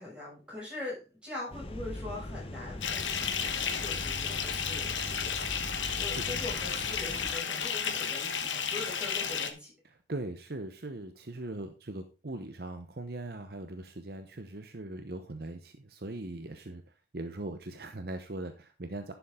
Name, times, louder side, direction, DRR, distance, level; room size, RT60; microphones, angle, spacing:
voice 1, 0.0-5.5 6.0-9.7, left 2 dB, 5° right, -5 dB, 6.6 m, -42 dB
sound 1, 1.5-7.4, left 1 dB, 30° left, 0.9 m, -41 dB
Bathtub (filling or washing) / Fill (with liquid), 2.8-9.5, left 7 dB, 85° left, 1.2 m, -33 dB
voice 2, 5.7-6.4 9.8-19.1, right 2 dB, 55° right, 7 dB, 0.9 m, -40 dB
11.0 x 7.0 x 3.7 m, 0.31 s
head